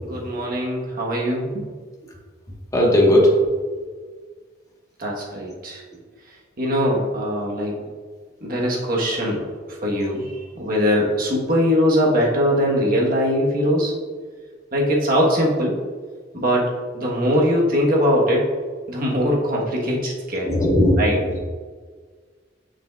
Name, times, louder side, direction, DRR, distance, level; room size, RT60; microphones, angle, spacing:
voice 1, 0.1-1.7 5.0-5.8 6.6-7.8 8.4-13.9 14.7-15.7 16.3-18.4 18.9-20.5 21.0-21.2, equal, 50° right, -2 dB, 1.2 m, -21 dB
voice 2, 2.7-3.4 20.4-21.4, left 1 dB, 20° left, -3 dB, 1.3 m, -17 dB
6.9 x 6.3 x 2.4 m, 1.5 s
head